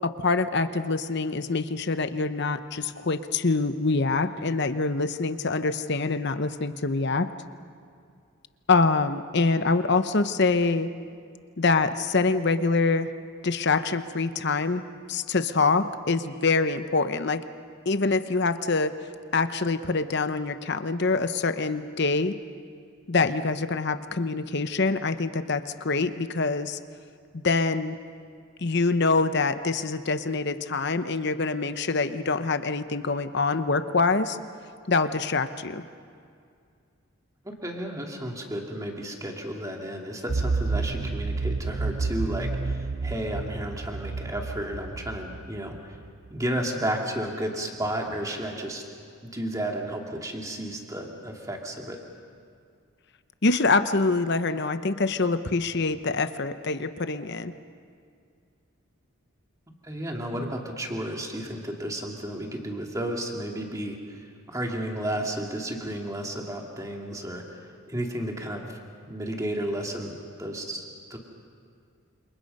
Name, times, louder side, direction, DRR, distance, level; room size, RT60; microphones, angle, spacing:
voice 1, 0.0-7.3 8.7-10.9 11.6-13.1 13.4-14.8 15.1-17.4 17.9-18.9 19.3-22.4 23.1-26.8 27.3-28.0 28.6-34.4 34.9-35.8 53.4-57.5, left 3 dB, 50° left, 10 dB, 0.9 m, -25 dB
voice 2, 37.4-46.0 46.3-48.8 49.2-52.0 59.8-68.8 69.1-71.2, right 1 dB, 15° right, 1 dB, 2.4 m, -33 dB
sound 1, 40.3-46.1, right 3 dB, 45° right, 0.5 m, -30 dB
29.0 x 27.0 x 5.5 m, 2.3 s
head